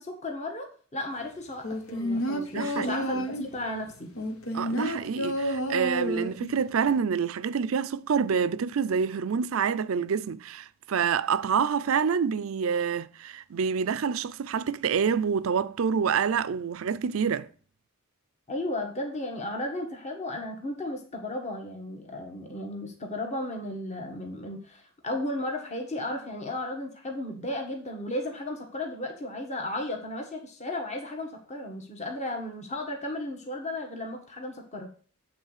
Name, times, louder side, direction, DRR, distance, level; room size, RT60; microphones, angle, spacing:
voice 1, 0.0-4.1 18.5-34.9, left 1 dB, 35° left, 1.5 m, -34 dB
sound 1, 1.6-3.6 4.2-6.6 6.9-7.0, equal, 75° left, 1.2 m, -30 dB
voice 2, 2.5-2.9 3.1-3.3 4.5-17.5, right 6 dB, 70° right, 0.4 m, -27 dB
8.0 x 3.9 x 6.6 m
head